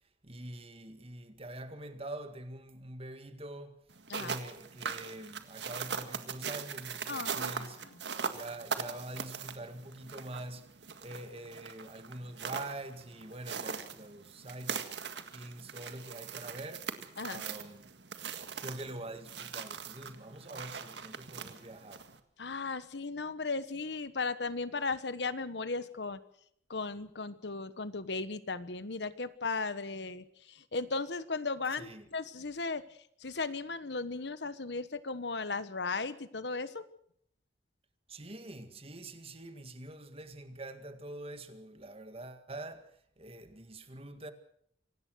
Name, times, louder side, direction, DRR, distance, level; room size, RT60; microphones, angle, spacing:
voice 1, 0.2-3.8 4.2-7.8 8.3-10.7 11.0-14.8 15.3-18.0 18.6-22.1 31.7-32.1 38.1-44.3, right 1 dB, 35° right, 2.0 m, -45 dB
sound 1, 3.9-22.2, right 6 dB, 75° right, 1.9 m, -41 dB
voice 2, 7.1-7.7 17.2-17.4 22.4-26.2 26.7-32.8 33.2-36.8, left 3 dB, 70° left, 1.2 m, -36 dB
25.5 x 18.0 x 6.4 m
head